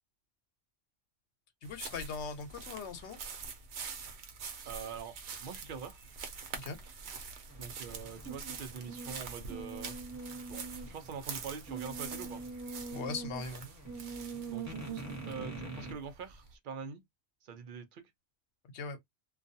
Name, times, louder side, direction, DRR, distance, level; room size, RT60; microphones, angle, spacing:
voice 1, 1.6-3.2 6.5-6.8 12.9-13.7 18.7-19.0, left 4 dB, 85° left, 0.9 m, -40 dB
sound 1, 1.6-16.5, right 5 dB, 85° right, 0.9 m, -46 dB
voice 2, 4.7-6.0 7.6-10.0 10.5-12.4 14.5-17.0 17.4-18.1, right 6 dB, 55° right, 0.7 m, -44 dB
sound 2, 7.5-15.9, right 4 dB, 15° right, 1.0 m, -43 dB
2.4 x 2.3 x 2.6 m
omnidirectional pair, 1.1 m